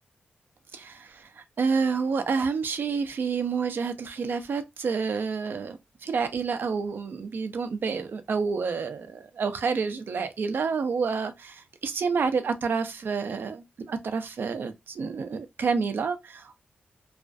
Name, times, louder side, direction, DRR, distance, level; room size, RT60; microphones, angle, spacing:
voice 1, 0.7-16.5, right 5 dB, 70° right, 0.4 m, -29 dB
2.4 x 2.2 x 2.4 m
wide cardioid pair, 90°, 4 cm